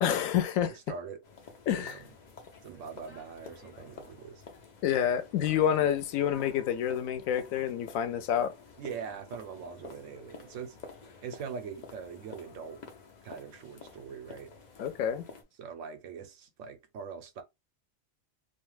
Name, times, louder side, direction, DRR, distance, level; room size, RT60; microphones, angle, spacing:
voice 1, 0.0-0.7 1.7-1.9 4.8-8.5 14.8-15.2, left 9 dB, 85° left, 1.0 m, -28 dB
voice 2, 0.7-1.3 1.7-2.1 2.6-4.4 5.4-5.7 8.8-10.8 11.2-12.9 13.2-14.6 15.6-17.4, right 6 dB, 70° right, 0.9 m, -42 dB
sound 1, 1.2-15.4, left 4 dB, 50° left, 0.5 m, -50 dB
2.5 x 2.3 x 3.1 m
omnidirectional pair, 1.4 m